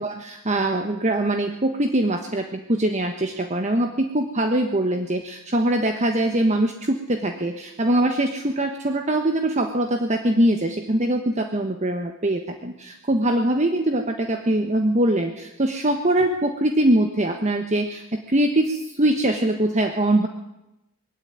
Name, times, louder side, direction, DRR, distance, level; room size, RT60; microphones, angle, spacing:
voice 1, 0.0-20.3, right 1 dB, 30° right, 5 dB, 1.3 m, -22 dB
21.0 x 16.5 x 9.7 m, 0.93 s
head